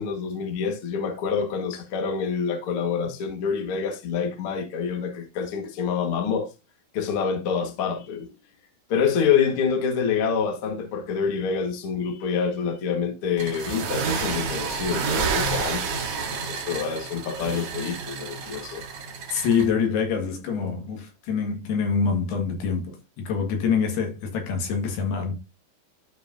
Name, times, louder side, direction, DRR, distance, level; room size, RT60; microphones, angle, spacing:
voice 1, 0.0-6.5 6.9-8.3 8.9-16.1 16.5-18.8, left 6 dB, 55° left, 1.5 m, -27 dB
sound 1, 13.4-19.7, right 5 dB, 60° right, 1.8 m, -29 dB
voice 2, 19.3-25.3, left 6 dB, 75° left, 3.6 m, -25 dB
12.5 x 4.8 x 2.6 m
omnidirectional pair, 4.8 m